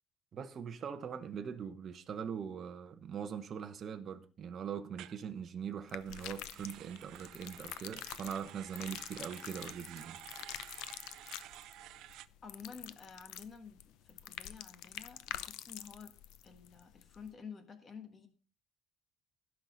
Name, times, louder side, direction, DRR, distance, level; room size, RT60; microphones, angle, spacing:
voice 1, 0.3-10.2, right 7 dB, 30° right, 0.9 m, -42 dB
sound 1, 4.9-5.2 6.0-12.3, right 14 dB, 60° right, 0.5 m, -52 dB
sound 2, 5.9-17.3, left 13 dB, 70° left, 0.6 m, -47 dB
voice 2, 12.4-16.2 16.4-18.3, left 6 dB, 25° left, 1.5 m, -51 dB
16.5 x 5.8 x 4.0 m
cardioid pair, 165°, 0 cm